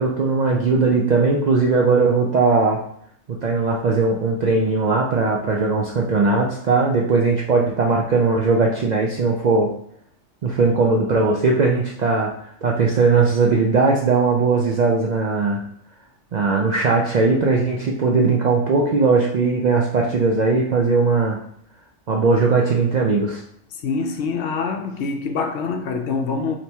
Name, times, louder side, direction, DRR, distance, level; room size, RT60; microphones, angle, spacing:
voice 1, 0.0-2.8 3.3-9.7 10.4-12.3 12.6-15.6 16.3-21.4 22.1-23.4, right 4 dB, 65° right, 0.4 m, -19 dB
voice 2, 23.7-26.6, left 4 dB, 70° left, 0.8 m, -25 dB
3.3 x 2.9 x 4.3 m
omnidirectional pair, 1.3 m